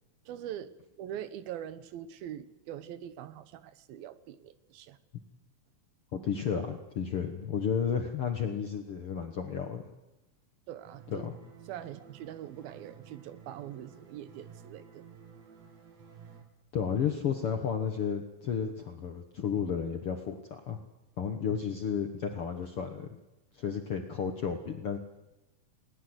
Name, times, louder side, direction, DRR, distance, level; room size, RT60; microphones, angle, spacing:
voice 1, 0.3-5.0 10.7-11.3 11.7-15.0 23.7-23.8, right 11 dB, 75° right, 14 dB, 2.8 m, -43 dB
voice 2, 6.1-9.8 11.1-11.3 16.7-20.8 21.2-23.1 23.5-25.0, left 7 dB, 60° left, 6 dB, 1.5 m, -32 dB
sound 1, 10.9-16.4, right 6 dB, 45° right, 3.0 m, -53 dB
20.5 x 19.0 x 7.9 m, 0.96 s
omnidirectional pair, 4.4 m